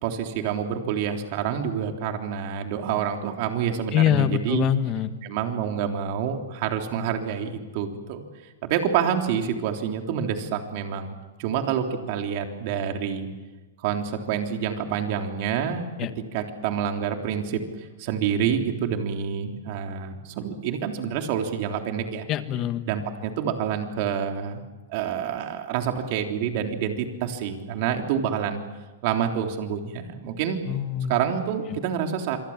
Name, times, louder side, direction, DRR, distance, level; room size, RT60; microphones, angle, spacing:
voice 1, 0.0-4.7 5.2-8.2 8.6-11.1 11.4-13.3 13.8-17.6 18.0-22.3 22.9-24.6 24.9-28.6 29.0-30.6 31.1-32.4, right 8 dB, 45° right, 4 dB, 3.4 m, -27 dB
voice 2, 3.9-5.1 16.0-16.1 22.3-22.8 30.7-31.1, left 10 dB, 30° left, 10 dB, 1.5 m, -23 dB
27.0 x 23.5 x 7.4 m, 1.2 s
hypercardioid pair, 150°, 0 cm